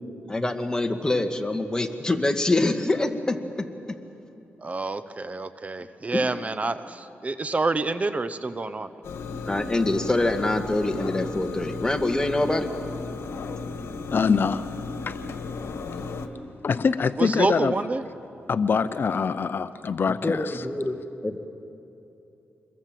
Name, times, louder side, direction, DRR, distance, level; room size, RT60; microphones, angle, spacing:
voice 1, 0.3-3.4 6.1-6.3 9.5-12.7 15.8-16.1 20.0-21.0 21.2-21.4, left 2 dB, 15° left, 5 dB, 1.8 m, -25 dB
voice 2, 4.6-8.9 17.2-18.0, right 3 dB, 35° right, 12 dB, 0.8 m, -27 dB
sound 1, 9.0-16.3, left 4 dB, 80° left, 1.5 m, -35 dB
voice 3, 14.1-14.7 15.0-15.3 16.6-17.8 18.5-20.7, left 5 dB, 55° left, 12 dB, 0.6 m, -24 dB
26.5 x 22.0 x 7.6 m, 2.9 s
cardioid pair, 80°, 4 cm